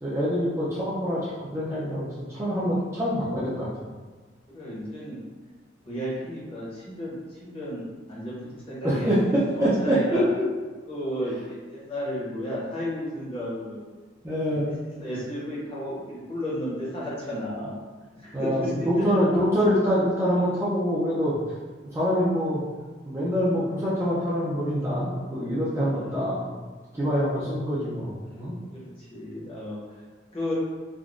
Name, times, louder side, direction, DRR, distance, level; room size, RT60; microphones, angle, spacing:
voice 1, 0.0-3.7 8.8-10.2 14.2-14.7 18.3-21.4 21.9-22.6 23.0-26.6 26.9-28.5, equal, 15° right, -8 dB, 0.4 m, -25 dB
voice 2, 4.5-5.2 5.9-9.2 9.5-10.2 10.9-13.8 14.5-17.7 18.1-19.0 20.3-20.4 25.8-26.2 28.3-29.8 30.3-30.5, equal, 30° left, -7 dB, 0.8 m, -33 dB
3.6 x 2.2 x 2.4 m, 1.3 s
head